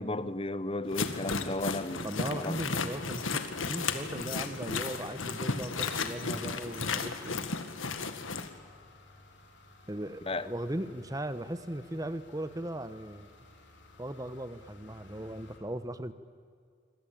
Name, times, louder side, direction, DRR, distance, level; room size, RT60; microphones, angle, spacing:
voice 1, 0.0-2.9 10.3-10.5, left 2 dB, 30° left, 1.0 m, -35 dB
sound 1, 0.9-8.5, left 4 dB, 85° left, 1.9 m, -34 dB
sound 2, 1.1-15.6, left 2 dB, 60° left, 4.4 m, -57 dB
voice 2, 2.0-7.4 9.9-13.3 14.0-16.1, right 1 dB, 20° right, 1.1 m, -38 dB
26.5 x 25.5 x 8.7 m
head